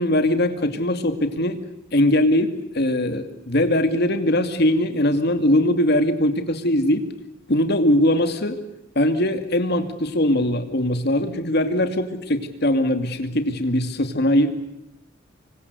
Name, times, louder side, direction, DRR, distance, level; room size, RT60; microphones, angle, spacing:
voice 1, 0.0-1.6 1.9-7.1 7.5-8.6 9.0-14.5, left 1 dB, 55° left, 8 dB, 2.4 m, -21 dB
26.5 x 24.0 x 8.3 m, 0.87 s
head